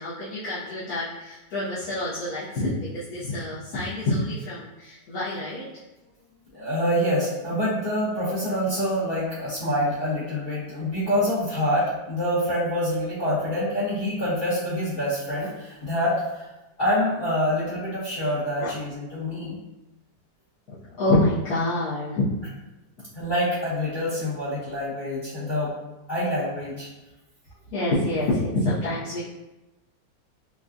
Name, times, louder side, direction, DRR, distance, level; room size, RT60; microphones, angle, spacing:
voice 1, 0.0-5.7 18.6-18.7 20.7-22.3 27.7-29.2, left 1 dB, 60° left, -11 dB, 1.3 m, -27 dB
voice 2, 6.5-16.5 16.8-19.6 23.1-25.7 26.1-26.9, equal, 40° left, -11 dB, 0.9 m, -26 dB
4.9 x 2.3 x 2.6 m, 1.0 s
omnidirectional pair, 1.9 m